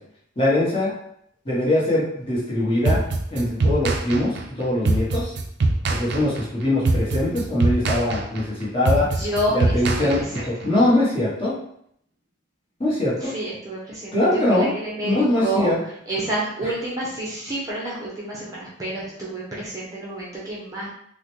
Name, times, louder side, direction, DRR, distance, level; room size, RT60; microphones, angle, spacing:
voice 1, 0.4-0.9 1.4-3.0 3.3-5.3 5.9-9.1 9.5-11.5 12.8-13.3 14.1-14.7 15.0-15.8 16.6-16.7, left 1 dB, 30° left, -7 dB, 1.1 m, -22 dB
sound 1, 2.8-10.7, right 2 dB, 55° right, 0.4 m, -23 dB
voice 2, 9.2-10.4 13.2-15.7 16.1-20.9, right 1 dB, 20° right, -6 dB, 0.6 m, -29 dB
3.9 x 2.1 x 3.0 m, 0.71 s
head